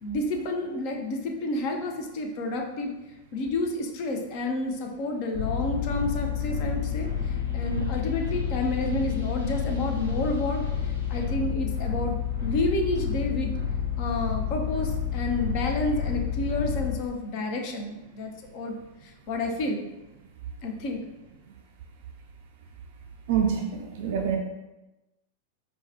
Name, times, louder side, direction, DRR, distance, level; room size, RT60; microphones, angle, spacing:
voice 1, 0.0-2.9 3.3-10.6 11.1-13.5 14.0-18.8 19.0-19.8 20.6-21.0, left 2 dB, 45° left, 3 dB, 0.5 m, -30 dB
sound 1, 5.3-17.0, left 8 dB, 85° left, 0.8 m, -29 dB
voice 2, 23.3-24.4, right 7 dB, 50° right, 2 dB, 0.3 m, -26 dB
4.7 x 2.2 x 2.7 m, 1.0 s
figure-of-eight pair, 90°, 0 cm